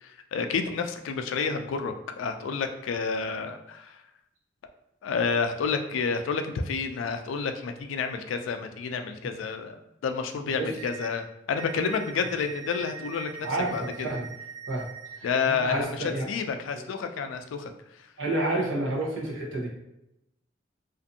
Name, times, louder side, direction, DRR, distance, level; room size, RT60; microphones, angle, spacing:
voice 1, 0.0-4.0 5.0-9.8 10.0-14.1 15.2-17.7, left 5 dB, 90° left, 7 dB, 0.3 m, -30 dB
sound 1, 10.8-11.1 11.6-15.2 15.7-15.8, right 7 dB, 35° right, 0.4 m, -42 dB
voice 2, 13.4-14.3 14.7-14.9 15.2-16.2 18.2-19.7, right 2 dB, 85° right, -2 dB, 0.8 m, -29 dB
2.5 x 2.5 x 2.6 m, 0.88 s
head